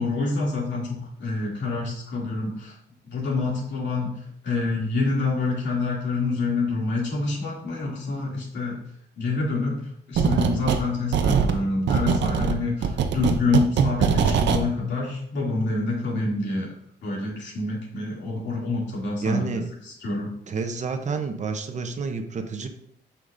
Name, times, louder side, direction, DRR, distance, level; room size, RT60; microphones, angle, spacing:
voice 1, 0.0-2.8 3.0-8.8 9.2-16.7 17.0-20.3, left 3 dB, 80° left, -4 dB, 2.6 m, -27 dB
sound 1, 10.1-10.8 11.1-14.6, right 6 dB, 80° right, 0.6 m, -22 dB
voice 2, 19.2-19.7 20.5-22.7, right 4 dB, 40° right, 7 dB, 0.7 m, -29 dB
8.2 x 5.8 x 2.6 m, 0.69 s
wide cardioid pair, 140°, 18 cm